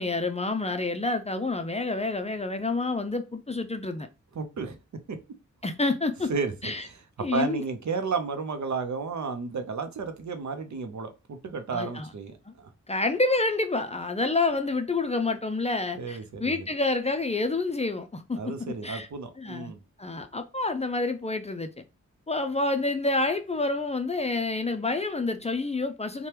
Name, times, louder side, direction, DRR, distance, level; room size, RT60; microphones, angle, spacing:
voice 1, 0.0-4.1 5.6-6.3 6.6-6.9 7.2-7.6 11.7-12.1 12.5-12.6 12.9-19.1 19.4-19.7 20.0-21.8 22.3-26.3, left 3 dB, 20° left, 0.4 m, -28 dB
voice 2, 4.3-4.8 5.1-5.2 6.3-7.0 7.3-12.7 16.0-16.7 18.4-19.8, right 5 dB, 65° right, 0.7 m, -32 dB
2.8 x 2.2 x 3.2 m
cardioid pair, 55°, 31 cm